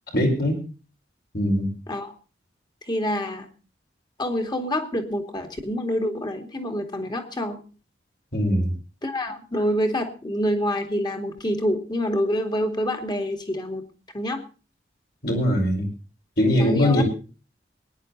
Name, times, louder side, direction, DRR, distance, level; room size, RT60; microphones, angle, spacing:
voice 1, 0.1-0.6 1.3-1.7 8.3-8.7 15.2-15.8 16.4-17.0, left 1 dB, 55° left, 1 dB, 5.1 m, -21 dB
voice 2, 2.9-3.5 4.2-7.6 9.0-13.8 14.1-14.4 16.6-17.0, equal, 25° left, 6 dB, 2.3 m, -27 dB
22.5 x 10.5 x 4.0 m, 0.36 s
head